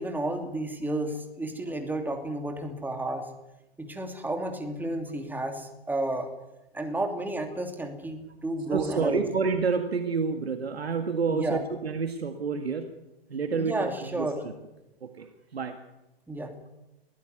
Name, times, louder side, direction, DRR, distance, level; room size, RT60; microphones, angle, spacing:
voice 1, 0.0-3.3 3.8-6.3 6.7-9.2 11.3-11.6 13.5-14.4 16.3-16.7, right 2 dB, 5° right, 5 dB, 2.8 m, -32 dB
voice 2, 8.7-12.9 13.3-14.5 15.0-15.8, right 5 dB, 80° right, 7 dB, 2.0 m, -29 dB
22.0 x 16.0 x 9.6 m, 0.97 s
hypercardioid pair, 115°, 31 cm